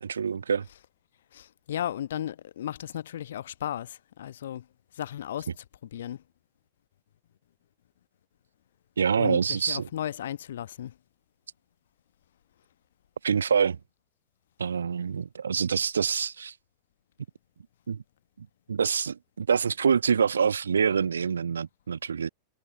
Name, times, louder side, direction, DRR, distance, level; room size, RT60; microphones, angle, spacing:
voice 1, 0.0-0.7 9.0-9.9 13.2-13.8 14.6-16.5 17.9-18.0 18.4-22.3, right 6 dB, 70° right, 0.3 m, -26 dB
voice 2, 1.3-4.6 4.9-6.2 9.2-10.9, left 11 dB, 60° left, 1.0 m, -35 dB
figure-of-eight pair, 90°, 0 cm